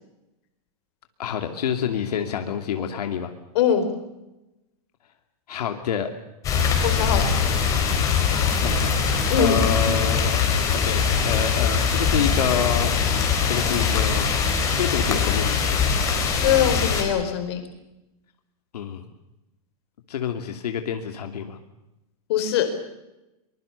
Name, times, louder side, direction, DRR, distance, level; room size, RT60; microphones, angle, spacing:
voice 1, 1.2-3.3 5.5-6.1 8.6-8.9 9.4-13.0 13.5-14.3 14.6-15.6 18.7-19.1 20.1-21.6, left 8 dB, 85° left, 5 dB, 2.7 m, -28 dB
voice 2, 3.5-3.9 6.8-7.3 9.3-9.6 16.4-17.6 22.3-22.7, left 8 dB, 40° left, 8 dB, 4.4 m, -22 dB
sound 1, 6.4-17.0, left 6 dB, 15° left, 4.1 m, -22 dB
24.0 x 22.0 x 6.9 m, 0.96 s
supercardioid pair, 180°, 20 cm